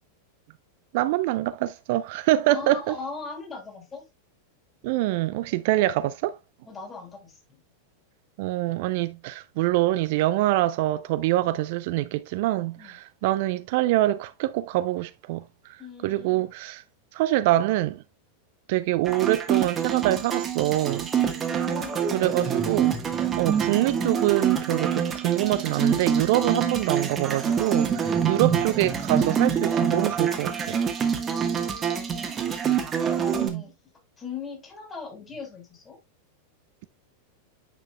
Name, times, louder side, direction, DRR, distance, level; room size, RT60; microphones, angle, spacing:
voice 1, 0.9-2.9 4.8-6.4 8.4-15.4 15.7-16.8 17.1-18.0 18.7-21.1 22.1-22.9 23.4-30.8 33.4-33.6, right 15 dB, 50° right, 0.4 m, -25 dB
voice 2, 2.5-4.0 5.4-5.5 6.7-7.6 11.5-11.6 12.8-13.0 15.8-16.5 21.1-22.5 28.0-28.2 31.2-32.6 33.1-33.7 34.2-36.0, left 4 dB, 20° left, 3.0 m, -40 dB
sound 1, 19.0-33.5, right 7 dB, 25° right, 1.4 m, -26 dB
9.1 x 6.1 x 2.3 m
figure-of-eight pair, 90°, 0 cm